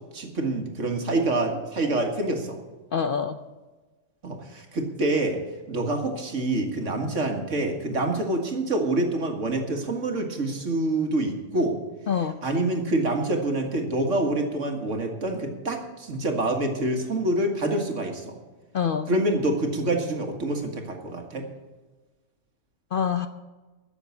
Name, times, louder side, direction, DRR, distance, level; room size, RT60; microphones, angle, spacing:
voice 1, 0.1-2.6 4.2-5.4 5.7-11.8 12.4-18.4 19.1-21.5, right 2 dB, 70° right, 3 dB, 2.1 m, -26 dB
voice 2, 2.9-3.4 12.1-12.4 18.7-19.1 22.9-23.3, left 7 dB, 55° left, 9 dB, 0.6 m, -25 dB
13.0 x 7.2 x 8.2 m, 1.2 s
omnidirectional pair, 1.4 m